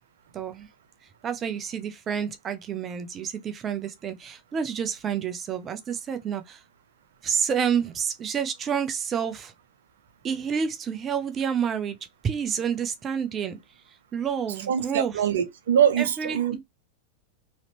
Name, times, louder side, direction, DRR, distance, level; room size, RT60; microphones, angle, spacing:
voice 1, 0.3-0.7 1.2-6.6 7.2-9.5 10.2-12.0 12.2-13.6 14.1-15.2 16.0-16.6, right 7 dB, 25° right, 0.7 m, -29 dB
voice 2, 14.7-16.6, right 9 dB, 60° right, 0.8 m, -23 dB
4.0 x 3.1 x 2.9 m
figure-of-eight pair, 90°, 0 cm